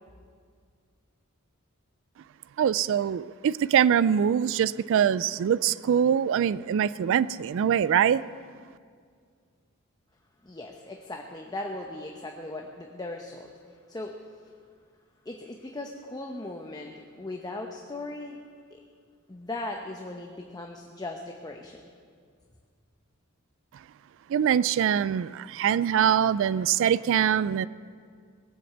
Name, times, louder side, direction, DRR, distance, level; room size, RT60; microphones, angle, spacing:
voice 1, 2.6-8.2 24.3-27.7, right 8 dB, 65° right, 18 dB, 0.3 m, -23 dB
voice 2, 10.4-14.2 15.2-18.4 18.7-18.8 19.3-21.8, left 2 dB, 20° left, 2 dB, 0.8 m, -38 dB
20.0 x 7.8 x 8.0 m, 2.1 s
head